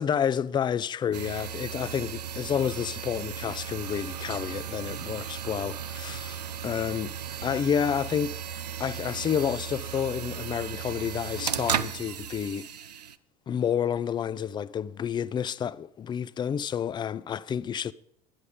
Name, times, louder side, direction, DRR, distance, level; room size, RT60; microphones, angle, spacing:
voice 1, 0.0-7.2 7.4-8.4 8.8-12.7 13.5-17.9, left 8 dB, 20° left, 0.4 m, -29 dB
sound 1, 1.1-13.2, right 8 dB, 85° right, 0.4 m, -35 dB
Wind instrument woodwind instrument, 3.6-8.2, right 8 dB, 65° right, 0.9 m, -51 dB
10.5 x 10.5 x 5.1 m
figure-of-eight pair, 65°, 20 cm